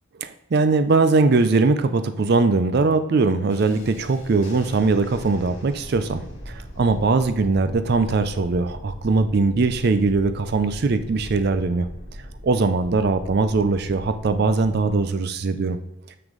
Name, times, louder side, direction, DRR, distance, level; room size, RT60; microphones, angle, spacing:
voice 1, 0.2-11.9 12.4-15.8, right 3 dB, 50° right, 11 dB, 0.4 m, -21 dB
Thunderstorm, 3.5-15.0, equal, 55° left, 2.4 m, -40 dB
6.8 x 6.1 x 3.8 m, 0.92 s
head